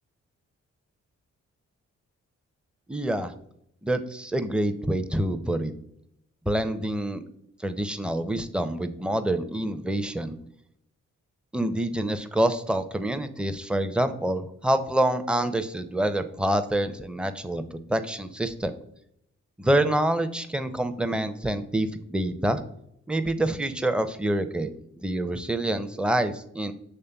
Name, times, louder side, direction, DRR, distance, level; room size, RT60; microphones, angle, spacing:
voice 1, 2.9-3.3 3.8-5.7 6.5-7.2 7.6-10.4 11.5-18.7 19.6-22.6 23.1-26.7, right 1 dB, 5° right, 9 dB, 0.4 m, -27 dB
6.8 x 3.3 x 2.2 m, 0.75 s
supercardioid pair, 45°, 32 cm